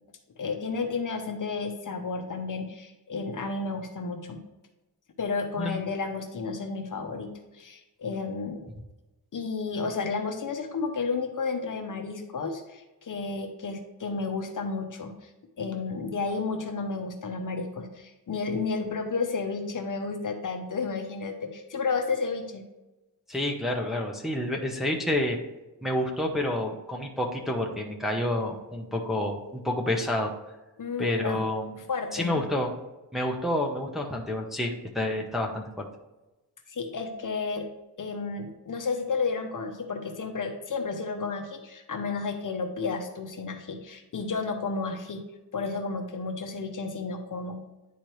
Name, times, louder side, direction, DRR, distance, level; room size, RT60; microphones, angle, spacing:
voice 1, 0.4-4.4 5.2-8.7 9.3-15.3 15.6-22.6 30.8-31.4 31.7-32.4 36.7-37.6 38.0-45.2 45.5-47.6, left 4 dB, 50° left, 5 dB, 0.8 m, -32 dB
voice 2, 23.3-25.4 25.8-30.3 31.0-31.7 32.1-32.7 33.1-35.9, left 1 dB, ahead, 0 dB, 0.8 m, -29 dB
10.0 x 4.4 x 3.2 m, 1.1 s
wide cardioid pair, 165°, 42 cm